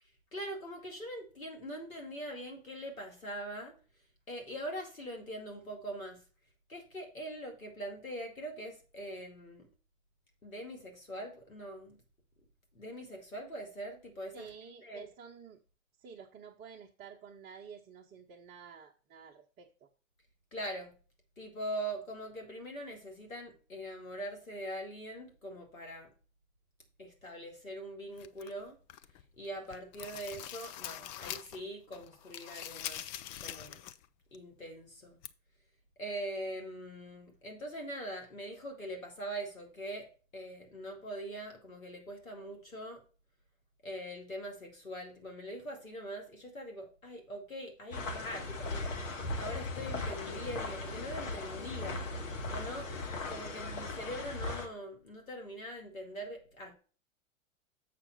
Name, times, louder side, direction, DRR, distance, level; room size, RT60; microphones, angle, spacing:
voice 1, 0.3-3.8 4.3-6.2 6.7-9.7 10.4-12.0 12.7-14.5 14.8-15.1 20.5-21.0 21.4-26.1 27.0-28.8 29.4-33.0 33.4-33.8 34.3-35.2 36.0-43.0 43.8-52.1 52.5-52.9 53.3-56.8, right 1 dB, 85° left, 2 dB, 2.4 m, -42 dB
voice 2, 14.3-15.6 16.0-19.9, right 6 dB, 25° right, 1 dB, 0.8 m, -51 dB
sound 1, 28.2-29.2 29.6-31.6 31.9-34.1 34.3-34.4 35.2-35.3, left 12 dB, 35° left, 0.5 m, -44 dB
sound 2, 47.9-54.7, left 2 dB, 70° left, 1.7 m, -38 dB
7.6 x 5.8 x 4.1 m, 0.37 s
figure-of-eight pair, 100°, 40 cm